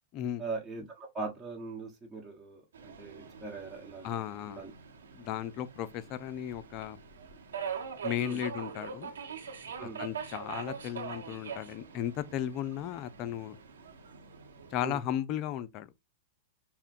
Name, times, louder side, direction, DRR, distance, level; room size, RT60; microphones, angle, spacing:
voice 1, 0.4-4.2 4.5-4.7 8.2-8.4 9.8-10.0 14.8-15.0, right 3 dB, 10° right, 1.1 m, -40 dB
Subway metro underground, 2.7-14.8, right 6 dB, 80° right, 1.0 m, -43 dB
voice 2, 4.0-4.6 5.1-7.0 8.0-9.1 9.8-13.6 14.7-15.9, left 11 dB, 40° left, 0.5 m, -35 dB
5.6 x 2.2 x 2.5 m
hypercardioid pair, 110°, 0 cm